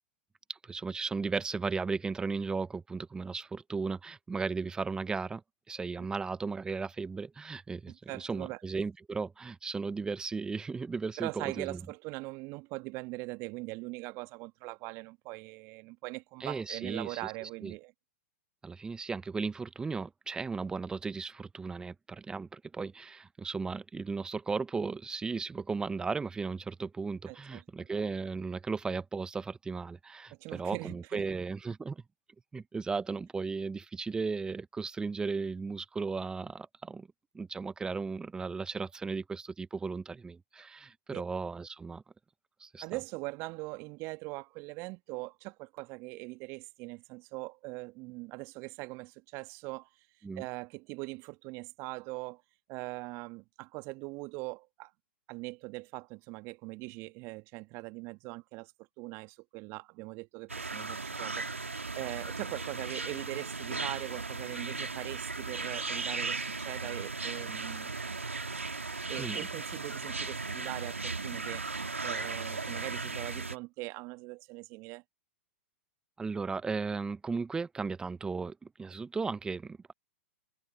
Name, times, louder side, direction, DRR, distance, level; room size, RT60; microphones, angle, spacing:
voice 1, 0.5-5.4 5.7-11.8 16.4-17.7 18.6-32.0 32.5-37.1 37.3-42.0 42.6-42.8 50.2-50.4 69.2-69.4 76.2-79.9, right 4 dB, 10° right, 0.9 m, -36 dB
voice 2, 8.1-8.6 11.2-17.9 27.3-27.9 30.4-31.3 41.1-41.2 42.8-49.9 50.4-52.4 52.7-54.9 55.3-58.7 59.0-67.9 68.8-71.7 72.0-75.0, right 25 dB, 40° right, 1.7 m, -41 dB
sound 1, 60.5-73.6, right 3 dB, 85° right, 3.1 m, -37 dB
figure-of-eight pair, 105°, 7 cm